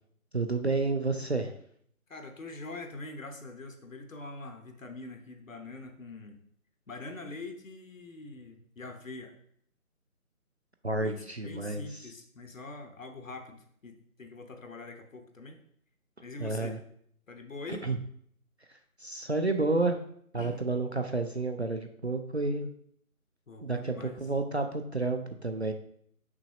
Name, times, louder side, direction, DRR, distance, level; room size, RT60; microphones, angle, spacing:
voice 1, 0.3-1.5 10.8-12.1 16.4-16.8 17.8-18.0 19.0-20.0 20.3-22.7 23.6-25.7, right 3 dB, 50° right, 6 dB, 0.4 m, -30 dB
voice 2, 2.1-6.4 6.9-9.3 11.0-15.6 16.2-16.8 17.3-17.9 20.4-20.6 23.5-24.3, left 3 dB, 60° left, 5 dB, 0.9 m, -44 dB
6.0 x 5.3 x 2.9 m, 0.65 s
figure-of-eight pair, 160°, 44 cm